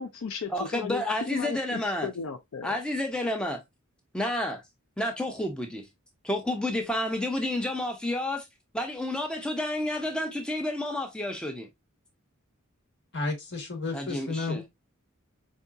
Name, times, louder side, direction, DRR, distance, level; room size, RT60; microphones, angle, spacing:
voice 1, 0.0-2.8, left 5 dB, 65° left, 0.4 m, -35 dB
voice 2, 0.5-2.1 2.6-3.6 4.1-4.6 5.0-5.9 6.2-8.4 8.7-11.7 13.9-14.6, left 1 dB, 5° left, 0.4 m, -30 dB
voice 3, 13.1-14.7, left 3 dB, 50° left, 1.1 m, -32 dB
4.5 x 2.7 x 2.2 m
head